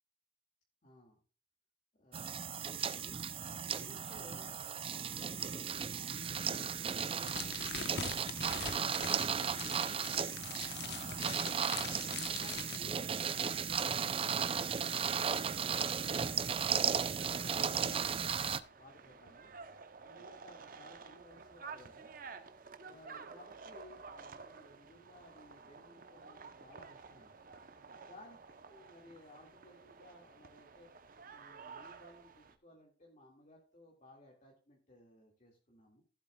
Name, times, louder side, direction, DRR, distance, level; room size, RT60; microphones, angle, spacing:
voice 1, 0.8-1.2 2.0-3.2 3.7-8.0 8.5-11.7 12.3-16.7 17.1-18.3 18.7-19.5 20.0-22.1 22.8-27.4 28.1-30.9 31.3-36.0, left 1 dB, 45° left, -2 dB, 2.1 m, -59 dB
sound 1, 2.1-18.6, right 7 dB, 30° right, 0.5 m, -35 dB
sound 2, 7.2-12.8, left 6 dB, 65° left, 1.0 m, -44 dB
sound 3, 14.2-32.6, right 5 dB, 50° right, 0.8 m, -53 dB
15.0 x 8.1 x 2.3 m, 0.38 s
head